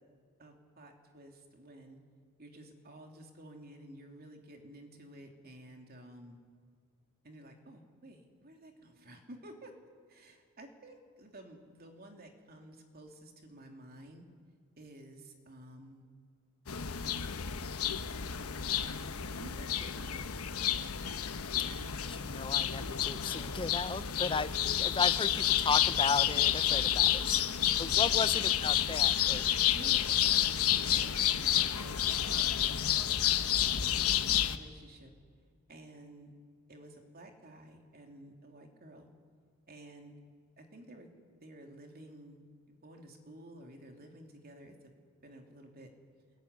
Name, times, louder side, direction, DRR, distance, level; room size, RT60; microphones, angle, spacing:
voice 1, 0.4-2.0 2.4-6.4 7.2-9.7 10.1-14.3 14.8-16.1 18.8-20.3 23.9-24.2 24.5-24.8 26.6-28.5 29.7-32.7 33.5-35.1 35.7-36.3 36.7-39.1 39.7-40.2 40.6-41.1 41.4-44.9 45.2-45.9, right 1 dB, 45° right, 3 dB, 2.9 m, -53 dB
sound 1, 16.7-34.6, left 10 dB, 90° left, 1.1 m, -30 dB
voice 2, 22.1-27.5 27.8-29.5, left 4 dB, 25° left, 14 dB, 0.6 m, -35 dB
24.5 x 22.0 x 9.8 m, 2.1 s
head